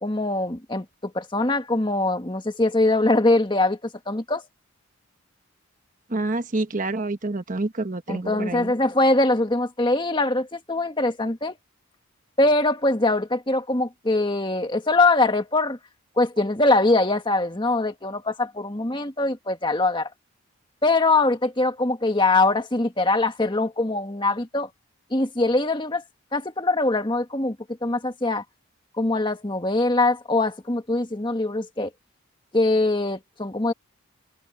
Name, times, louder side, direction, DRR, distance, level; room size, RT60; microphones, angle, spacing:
voice 1, 0.0-4.4 8.1-11.5 12.4-15.8 16.2-20.1 20.8-24.7 25.1-26.0 26.3-27.6 27.8-28.4 29.0-31.9 32.5-33.7, left 2 dB, 20° left, 1.6 m, -22 dB
voice 2, 6.1-8.7, right 2 dB, 35° right, 1.1 m, -27 dB
open air
head